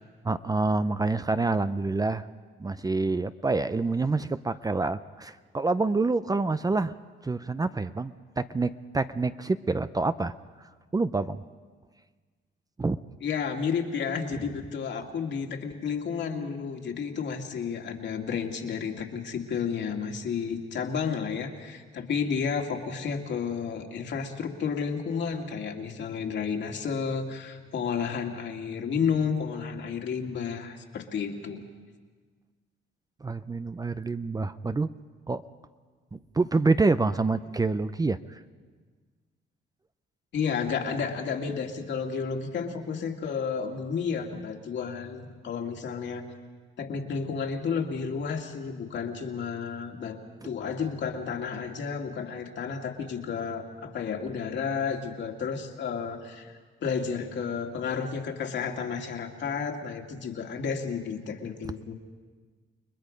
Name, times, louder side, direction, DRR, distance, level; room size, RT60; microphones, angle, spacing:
voice 1, 0.2-2.3 2.6-7.0 7.2-10.3 10.9-11.4 12.8-13.0 33.2-34.9 35.3-35.4 36.1-38.4, right 3 dB, 20° right, 12 dB, 0.6 m, -27 dB
voice 2, 13.2-31.6 40.3-46.2 46.8-50.2 50.4-61.9, left 6 dB, 65° left, 2 dB, 2.3 m, -31 dB
29.5 x 20.5 x 5.2 m, 1.5 s
cardioid pair, 90°, 20 cm